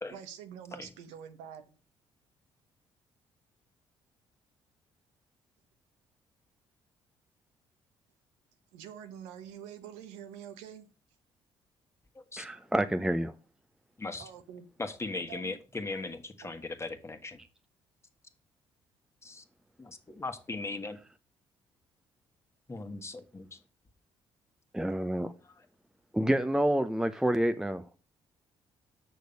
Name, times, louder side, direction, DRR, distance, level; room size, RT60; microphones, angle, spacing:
voice 1, 0.1-1.8 8.7-10.9 14.2-14.7 15.3-15.6 16.4-16.6, right 9 dB, 85° right, 1.0 m, -46 dB
voice 2, 12.4-13.3 24.7-25.3 26.1-28.0, right 1 dB, 5° right, 0.7 m, -28 dB
voice 3, 14.0-14.3 14.8-17.3 19.2-19.4 19.8-21.0 22.7-23.6 25.4-25.7, left 3 dB, 25° left, 1.5 m, -38 dB
6.6 x 6.4 x 5.3 m
supercardioid pair, 60°, 11 cm